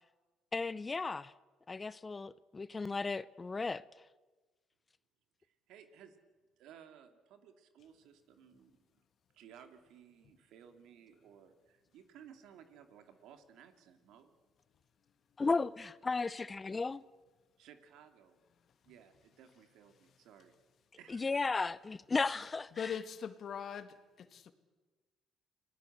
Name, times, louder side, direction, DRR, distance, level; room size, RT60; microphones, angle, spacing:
voice 1, 0.5-1.3 1.7-3.8 15.4-17.0 21.1-23.0, left 4 dB, 30° left, 0.7 m, -35 dB
voice 2, 5.4-6.2 6.6-8.7 9.3-14.3 17.6-18.4 18.8-20.5 21.0-21.3, right 8 dB, 75° right, 2.6 m, -58 dB
voice 3, 22.7-24.5, left 7 dB, 55° left, 2.0 m, -41 dB
29.0 x 19.5 x 8.1 m
supercardioid pair, 70°, 0 cm